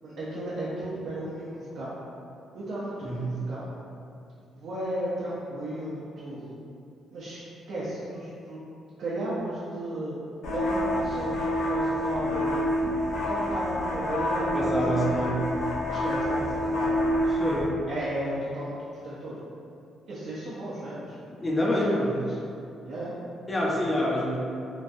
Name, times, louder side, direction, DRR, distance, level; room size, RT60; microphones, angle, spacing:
voice 1, 0.0-2.0 2.5-3.7 4.5-6.6 7.1-8.6 9.0-10.1 10.5-12.7 13.1-15.3 15.9-16.9 17.9-18.8 19.0-19.4 20.1-21.2 21.6-22.3 22.8-23.1, right 1 dB, 70° right, -9 dB, 0.6 m, -34 dB
voice 2, 3.0-3.4 14.5-15.4 17.3-17.7 21.4-22.2 23.5-24.4, equal, 25° left, -3 dB, 0.5 m, -26 dB
sound 1, 10.4-17.6, left 1 dB, 75° left, 0.9 m, -27 dB
3.0 x 2.4 x 2.6 m, 2.6 s
cardioid pair, 90°, 0 cm